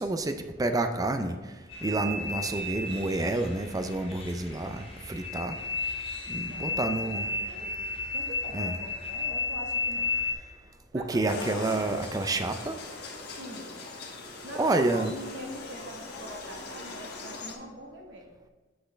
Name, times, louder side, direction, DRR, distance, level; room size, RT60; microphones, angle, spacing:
voice 1, 0.0-1.4 1.8-5.6 6.3-7.3 8.5-8.7 10.9-12.8 14.5-15.1, right 2 dB, 20° right, 7 dB, 0.4 m, -29 dB
sound 1, 1.7-10.3, left 3 dB, 30° left, 1.0 m, -33 dB
voice 2, 6.5-7.9 8.1-10.1 10.9-11.7 13.4-13.7 14.4-18.3, equal, 75° right, 0 dB, 1.4 m, -43 dB
sound 2, 11.3-17.6, left 3 dB, 60° left, 1.2 m, -40 dB
7.8 x 6.1 x 3.3 m, 1.3 s
head